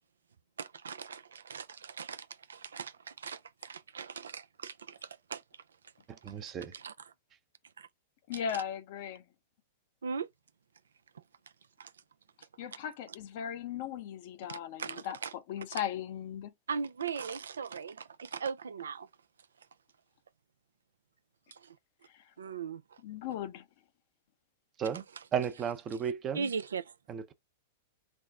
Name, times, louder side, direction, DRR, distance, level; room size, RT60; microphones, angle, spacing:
voice 1, 0.6-5.4 6.3-6.9 7.8-7.9 8.3-8.4 10.0-10.3 11.8-11.9 13.1-13.2 14.5-15.3 15.7-15.8 16.7-19.1 21.5-21.8 22.4-23.0 25.2-25.3 26.3-26.9, right 6 dB, 80° right, 0.4 m, -39 dB
voice 2, 6.1-6.7 24.8-25.0 25.3-26.5 27.1-27.3, right 7 dB, 30° right, 0.6 m, -34 dB
voice 3, 8.3-9.2 12.6-16.5 22.1-22.2 23.0-23.6, left 9 dB, 55° left, 0.7 m, -38 dB
3.5 x 2.0 x 3.6 m
hypercardioid pair, 105°, 0 cm